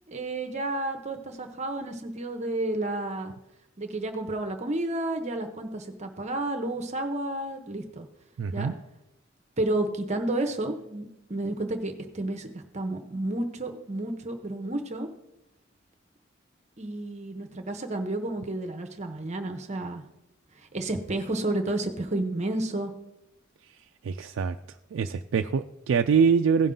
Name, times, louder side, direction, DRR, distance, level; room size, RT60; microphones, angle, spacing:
voice 1, 0.1-3.3 3.8-8.1 8.5-8.7 9.6-15.1 16.8-20.0 20.6-22.9, right 2 dB, 35° right, 5 dB, 0.8 m, -31 dB
voice 2, 8.4-8.7 24.0-24.6 24.9-26.7, right 6 dB, 70° right, 6 dB, 0.3 m, -24 dB
16.5 x 5.4 x 3.7 m, 0.89 s
head